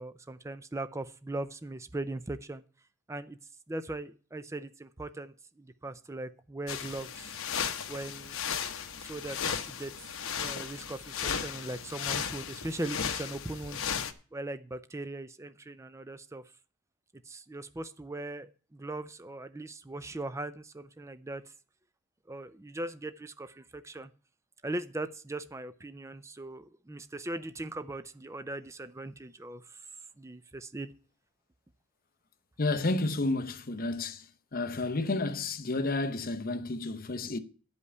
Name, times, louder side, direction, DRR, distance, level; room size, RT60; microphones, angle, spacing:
voice 1, 0.0-2.6 3.1-3.4 3.7-7.4 7.9-8.4 9.0-10.1 10.4-13.8 14.3-16.4 17.3-21.4 22.3-24.1 24.6-29.8 30.2-30.9, right 2 dB, 15° right, 0.4 m, -39 dB
sound 1, 6.7-14.1, left 7 dB, 70° left, 1.0 m, -35 dB
voice 2, 32.6-34.2 34.5-37.4, left 2 dB, 40° left, 0.8 m, -31 dB
11.0 x 5.4 x 8.1 m
head